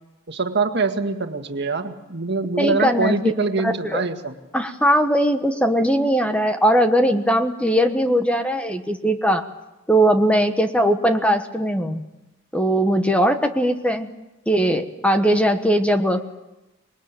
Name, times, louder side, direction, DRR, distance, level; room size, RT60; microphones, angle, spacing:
voice 1, 0.3-4.3, right 3 dB, 60° right, 6 dB, 1.9 m, -24 dB
voice 2, 2.6-4.1 4.5-9.5 9.9-12.1 12.5-14.1 14.5-16.2, equal, 5° left, 7 dB, 1.2 m, -20 dB
26.0 x 21.0 x 8.9 m, 1.0 s
head